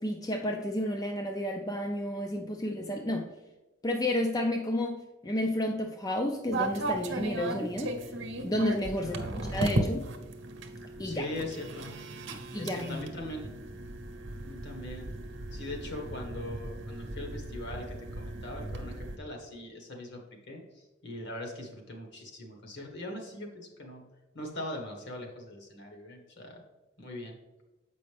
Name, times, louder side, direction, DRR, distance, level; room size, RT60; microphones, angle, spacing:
voice 1, 0.0-3.3 3.8-7.9 8.4-10.1 11.0-11.3 12.5-13.0, left 1 dB, 20° left, 3 dB, 0.4 m, -31 dB
sound 1, 6.5-19.2, right 1 dB, 65° right, 0.8 m, -36 dB
voice 2, 9.0-9.4 11.0-11.9 12.6-13.5 14.4-15.1 15.5-20.2 20.5-20.6 21.0-24.0 24.3-26.6 27.0-27.3, left 1 dB, 60° left, 1 dB, 1.5 m, -41 dB
7.5 x 5.3 x 3.4 m, 1.1 s
head